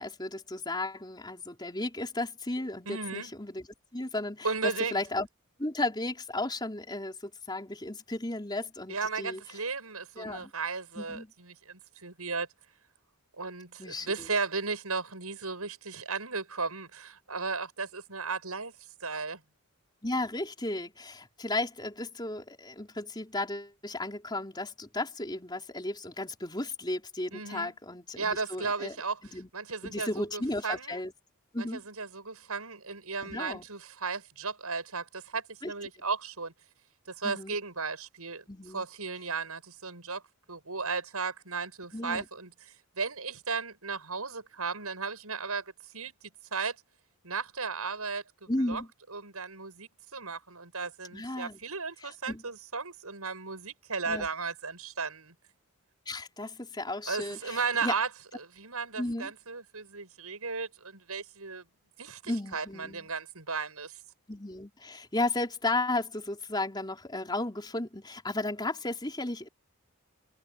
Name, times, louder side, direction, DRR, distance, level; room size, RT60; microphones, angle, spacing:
voice 1, 0.0-3.7 3.9-5.3 5.6-9.4 10.2-10.5 11.0-11.3 13.8-14.3 20.0-28.9 29.3-29.5 29.8-31.1 31.5-31.8 33.2-33.7 35.6-35.7 37.2-37.6 38.5-38.9 41.9-42.3 48.5-48.9 51.1-51.6 52.0-52.4 54.1-54.3 56.1-57.9 59.0-59.3 62.3-63.1 64.3-69.5, left 2 dB, 20° left, 4.1 m, -34 dB
voice 2, 2.9-3.3 4.4-5.0 8.9-12.5 13.4-18.7 19.0-19.4 27.3-27.7 28.2-29.2 29.5-31.0 31.6-36.5 37.1-38.4 38.7-40.2 40.5-42.5 43.0-46.1 46.5-46.8 47.2-48.8 49.1-55.3 57.1-61.6 62.0-64.0, right 4 dB, 85° right, 7.3 m, -35 dB
head